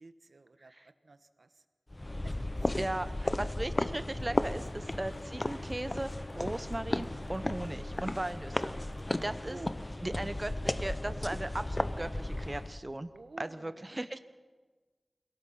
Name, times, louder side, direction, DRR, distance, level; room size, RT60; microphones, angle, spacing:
voice 1, 0.0-1.6 2.2-2.8 3.0-3.3 9.3-10.2 13.1-13.9, right 3 dB, 70° right, 10 dB, 1.2 m, -51 dB
sound 1, 1.9-12.8, left 1 dB, 30° left, 0.9 m, -35 dB
voice 2, 2.8-8.7 9.2-9.6 10.0-13.1 13.4-14.2, right 1 dB, 30° right, 11 dB, 0.8 m, -37 dB
Applause, 3.4-10.2, left 1 dB, 50° left, 4.5 m, -57 dB
28.5 x 17.5 x 5.7 m, 1.4 s
cardioid pair, 45°, 0 cm